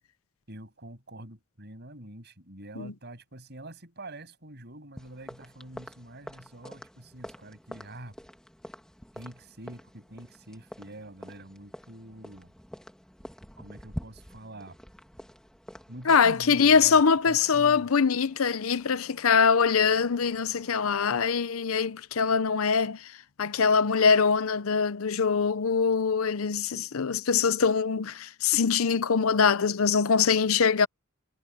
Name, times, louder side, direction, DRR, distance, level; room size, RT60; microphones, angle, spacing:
voice 1, 0.5-8.1 9.1-12.5 13.6-14.8 15.9-17.0 17.3-17.9, right 1 dB, 50° right, 8.0 m, -45 dB
sound 1, 5.0-20.9, equal, 5° left, 2.4 m, -47 dB
voice 2, 16.1-23.1 23.4-30.9, left 6 dB, 80° left, 0.7 m, -23 dB
head